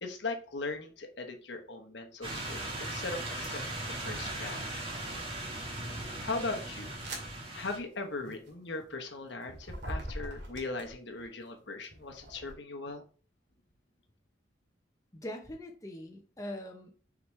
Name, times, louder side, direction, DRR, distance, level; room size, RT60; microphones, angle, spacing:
voice 1, 0.0-4.6 6.2-6.9 7.5-13.0, left 3 dB, 70° left, 5 dB, 1.1 m, -39 dB
sound 1, 2.2-7.8, right 1 dB, 30° right, 1.7 m, -38 dB
sound 2, 6.1-11.2 11.8-12.5, right 1 dB, 65° right, 2.2 m, -44 dB
voice 2, 15.1-16.9, left 1 dB, 15° left, 2 dB, 0.8 m, -42 dB
6.0 x 5.1 x 3.2 m, 0.39 s
head